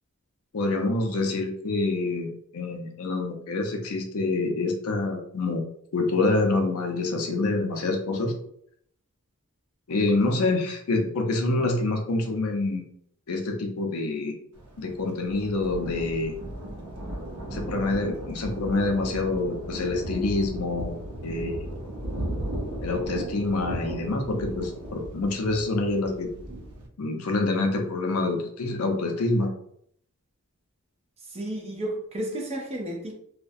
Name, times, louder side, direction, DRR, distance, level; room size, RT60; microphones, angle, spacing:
voice 1, 0.5-5.6 5.9-8.3 9.9-12.9 13.3-14.3 14.8-16.3 17.5-21.0 21.2-21.7 22.8-26.3 27.0-29.5, left 2 dB, 70° left, 0.5 m, -26 dB
Thunder, 14.5-26.9, right 1 dB, 80° right, 0.6 m, -36 dB
voice 2, 31.3-33.1, right 1 dB, 25° right, 0.5 m, -32 dB
2.3 x 2.1 x 2.6 m
head